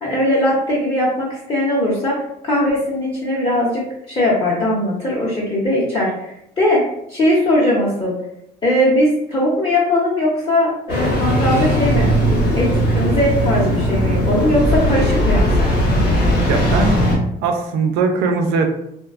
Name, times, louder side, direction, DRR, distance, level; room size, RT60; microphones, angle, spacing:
voice 1, 0.0-6.8 7.1-8.1 8.6-12.1 12.6-15.7, left 1 dB, 30° left, -6 dB, 0.7 m, -19 dB
Engine starting, 10.9-17.2, equal, 85° left, 1.1 m, -17 dB
voice 2, 16.4-16.9 17.4-18.7, right 4 dB, 90° right, 5 dB, 0.4 m, -19 dB
2.5 x 2.2 x 2.4 m, 0.78 s
cardioid pair, 110°, 17 cm